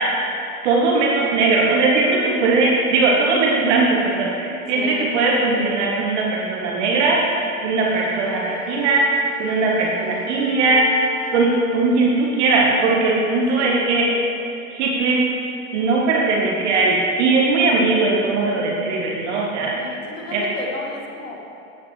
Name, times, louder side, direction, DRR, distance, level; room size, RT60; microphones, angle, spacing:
voice 1, 0.6-7.2 7.6-9.0 9.4-10.9 11.3-14.1 14.7-15.2 15.7-19.9 20.3-20.4, right 3 dB, 55° right, -2 dB, 1.5 m, -19 dB
voice 2, 4.7-5.2 13.5-13.8 19.6-21.4, left 3 dB, 65° left, -1 dB, 2.0 m, -33 dB
Wind instrument woodwind instrument, 7.7-11.6, left 4 dB, 20° left, 1.7 m, -35 dB
14.5 x 9.1 x 3.3 m, 2.6 s
figure-of-eight pair, 85°, 41 cm